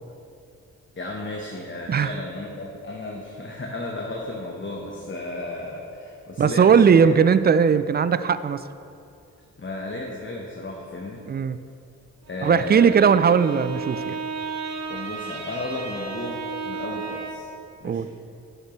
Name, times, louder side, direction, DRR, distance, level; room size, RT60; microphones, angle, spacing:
voice 1, 1.0-7.1 9.6-11.2 12.3-13.0 14.9-16.4 16.6-17.5 17.8-18.1, left 2 dB, 30° left, -1 dB, 1.2 m, -34 dB
voice 2, 6.4-8.6 11.3-11.6 12.4-14.2 17.8-18.1, right 6 dB, 30° right, 14 dB, 0.4 m, -18 dB
Bowed string instrument, 12.3-17.6, right 5 dB, 45° right, 0.9 m, -34 dB
10.5 x 6.5 x 3.2 m, 2.6 s
supercardioid pair, 40°, 37 cm